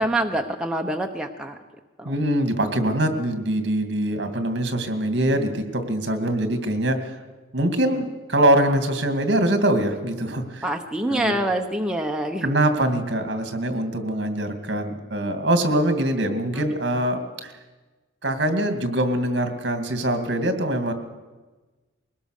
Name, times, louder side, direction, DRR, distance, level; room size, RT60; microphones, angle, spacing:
voice 1, 0.0-1.6 2.0-2.2 10.6-12.5 16.6-16.7, right 1 dB, 5° right, 2 dB, 0.9 m, -25 dB
voice 2, 2.0-7.2 7.5-10.7 11.1-11.4 12.4-17.5 18.2-20.9, right 1 dB, 60° right, 7 dB, 2.4 m, -23 dB
22.0 x 18.5 x 6.6 m, 1.2 s
head